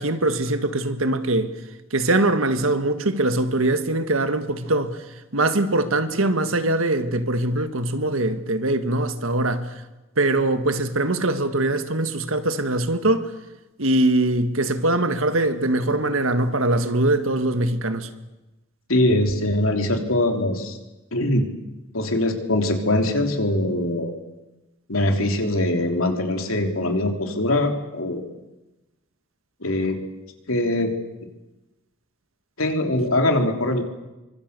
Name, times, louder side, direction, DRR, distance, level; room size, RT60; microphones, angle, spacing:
voice 1, 0.0-1.5 1.9-5.0 5.3-9.7 10.2-13.3 13.8-18.1, right 2 dB, 85° right, 1.9 m, -22 dB
voice 2, 18.9-20.8 21.1-21.5 21.9-24.1 24.9-28.2 29.6-30.0 30.5-30.9 32.6-33.8, left 1 dB, 90° left, 3.4 m, -22 dB
27.5 x 24.5 x 6.9 m
head